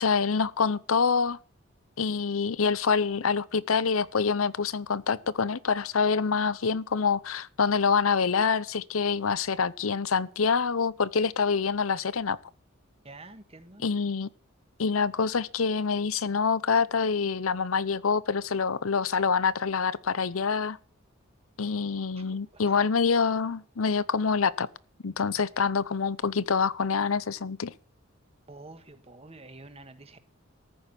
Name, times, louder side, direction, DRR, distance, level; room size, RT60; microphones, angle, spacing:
voice 1, 0.0-1.4 2.0-12.4 13.8-14.3 14.8-20.8 21.6-24.7 25.0-27.7, left 5 dB, 90° left, 0.7 m, -26 dB
voice 2, 13.0-13.9 22.2-22.9 28.5-30.2, right 2 dB, 30° right, 1.5 m, -48 dB
14.0 x 6.3 x 9.7 m
head